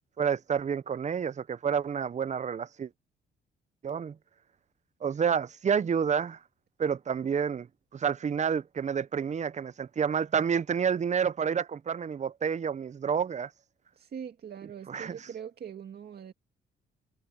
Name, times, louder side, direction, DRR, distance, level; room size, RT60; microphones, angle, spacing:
voice 1, 0.2-2.9 3.8-4.1 5.0-6.4 6.8-7.7 7.9-13.5 14.9-15.1, right 7 dB, 35° right, 0.7 m, -29 dB
voice 2, 14.0-16.3, right 8 dB, 55° right, 2.0 m, -42 dB
cardioid pair, 90°, 20 cm